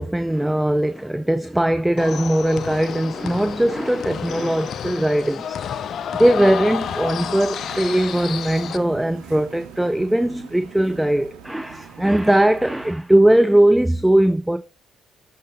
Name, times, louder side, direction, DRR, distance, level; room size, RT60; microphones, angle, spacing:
voice 1, 0.0-5.6 6.1-14.6, right 1 dB, 10° right, 0.5 m, -19 dB
sound 1, 2.0-8.8, left 8 dB, 60° left, 0.3 m, -30 dB
sound 2, 6.4-12.9, right 8 dB, 75° right, 0.5 m, -43 dB
6.5 x 2.8 x 5.4 m
hypercardioid pair, 45°, 0 cm